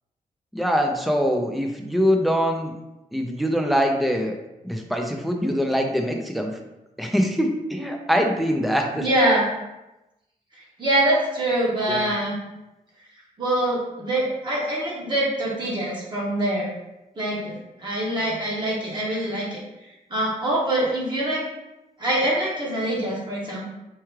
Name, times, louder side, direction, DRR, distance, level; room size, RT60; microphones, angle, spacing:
voice 1, 0.5-2.7 3.1-4.4 4.6-6.5 7.0-9.0 11.9-12.1, equal, ahead, 2 dB, 0.4 m, -23 dB
voice 2, 9.0-9.5 10.8-12.4 13.4-16.7 17.2-19.6 20.1-21.4 22.0-23.7, right 1 dB, 30° right, -5 dB, 0.9 m, -24 dB
4.5 x 2.3 x 3.1 m, 0.97 s
wide cardioid pair, 160°, 15 cm